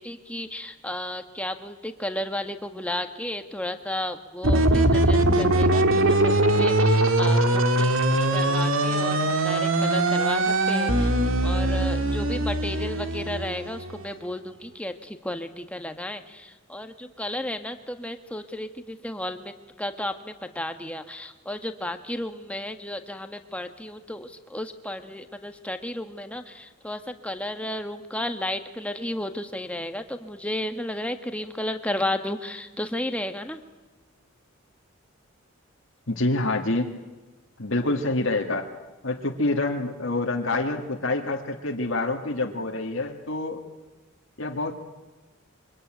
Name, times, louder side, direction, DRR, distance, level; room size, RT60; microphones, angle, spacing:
voice 1, 0.0-11.1 11.4-33.6, left 1 dB, 5° left, 7 dB, 1.5 m, -33 dB
sound 1, 4.4-14.0, right 1 dB, 70° right, 2.1 m, -21 dB
voice 2, 36.1-36.9 37.6-38.7 39.0-43.6 44.4-44.7, left 2 dB, 65° left, 2 dB, 2.0 m, -27 dB
27.0 x 24.5 x 9.1 m, 1.2 s
head